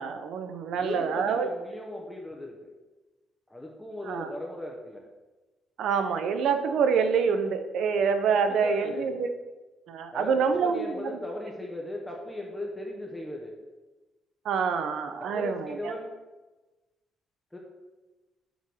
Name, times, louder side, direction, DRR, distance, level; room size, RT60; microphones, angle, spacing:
voice 1, 0.0-1.5 4.1-4.3 5.8-9.3 9.9-11.0 14.4-15.9, right 6 dB, 75° right, 8 dB, 0.8 m, -26 dB
voice 2, 0.7-2.7 3.5-5.0 8.4-9.3 10.1-13.6 15.2-16.1 17.5-17.6, left 1 dB, 10° left, -1 dB, 1.1 m, -38 dB
7.0 x 3.9 x 6.4 m, 1.2 s
cardioid pair, 90°, 0 cm